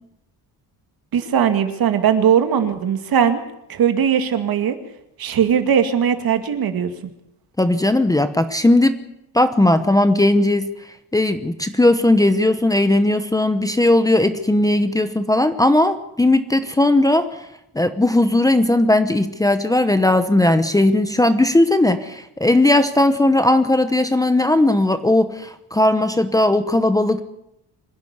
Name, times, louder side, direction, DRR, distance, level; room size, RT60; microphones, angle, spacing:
voice 1, 1.1-3.4 3.7-4.8 5.2-6.9, right 8 dB, 55° right, 7 dB, 2.3 m, -19 dB
voice 2, 7.6-9.0 9.3-10.7 11.1-17.4 17.7-27.2, left 1 dB, 10° left, 9 dB, 0.9 m, -17 dB
25.5 x 11.5 x 9.6 m, 0.82 s
cardioid pair, 165°, 42 cm